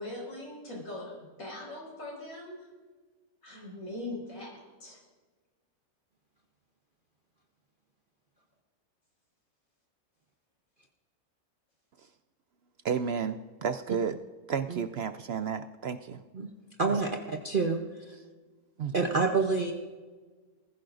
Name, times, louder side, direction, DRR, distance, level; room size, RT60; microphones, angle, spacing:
voice 1, 0.0-2.6 3.4-5.0, left 1 dB, 65° left, 5.6 m, -41 dB
voice 2, 12.8-14.2 14.5-16.2 16.9-17.0 18.8-18.9, right 6 dB, 65° right, 0.6 m, -32 dB
voice 3, 16.8-17.8 18.1-18.2 18.9-19.7, right 4 dB, 40° right, 0.9 m, -27 dB
20.0 x 15.5 x 2.6 m
omnidirectional pair, 1.6 m